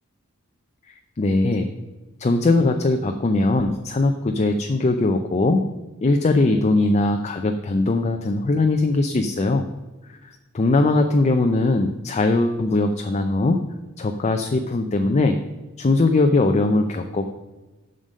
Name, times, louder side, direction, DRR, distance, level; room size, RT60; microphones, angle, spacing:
voice 1, 0.9-1.7 2.2-5.6 6.0-9.7 10.1-13.6 14.0-15.4 15.8-17.3, left 2 dB, 30° left, 6 dB, 0.5 m, -20 dB
7.4 x 6.6 x 5.3 m, 1.2 s
head